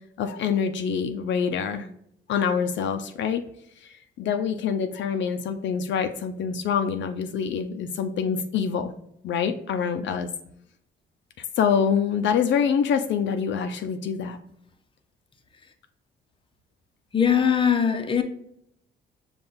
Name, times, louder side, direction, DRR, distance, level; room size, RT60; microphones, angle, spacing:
voice 1, 0.2-1.9 2.3-3.4 3.8-8.9 9.2-10.3 11.6-14.4, left 7 dB, 70° left, 0.5 m, -25 dB
voice 2, 17.1-18.2, left 7 dB, 25° left, 0.6 m, -21 dB
5.3 x 2.3 x 3.9 m
cardioid pair, 90°, 20 cm